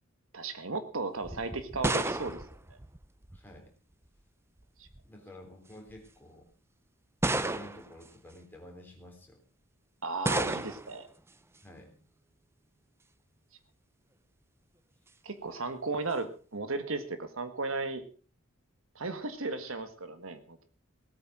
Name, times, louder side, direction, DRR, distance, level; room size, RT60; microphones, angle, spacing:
voice 1, 0.3-2.4 4.8-4.9 10.0-11.1 15.2-18.0 18.9-20.7, right 3 dB, 70° right, 10 dB, 1.6 m, -35 dB
sound 1, 1.2-3.6 4.6-5.1 5.9-6.0 7.2-8.0 10.2-11.0, right 2 dB, 10° right, 0.6 m, -32 dB
voice 2, 3.3-3.7 5.0-6.5 7.3-9.4 11.6-12.0, left 1 dB, 10° left, 1 dB, 3.7 m, -50 dB
18.0 x 8.8 x 6.1 m, 0.39 s
head